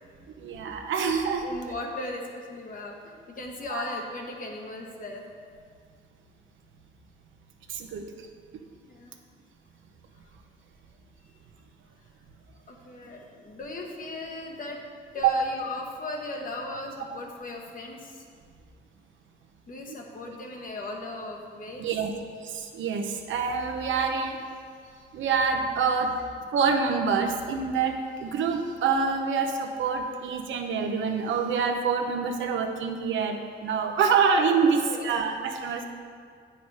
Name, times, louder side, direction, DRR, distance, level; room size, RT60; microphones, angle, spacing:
voice 1, 0.4-1.5 3.7-3.8 7.7-8.1 15.2-15.3 21.8-22.1 22.4-24.4 25.1-26.2 26.5-35.8, right 5 dB, 75° right, 4 dB, 0.9 m, -26 dB
voice 2, 1.4-5.3 8.8-9.1 12.7-14.8 15.1-18.3 19.7-21.9 34.6-35.1, left 2 dB, 45° left, 1 dB, 1.3 m, -37 dB
8.3 x 6.0 x 4.8 m, 2.1 s
cardioid pair, 90°, 20 cm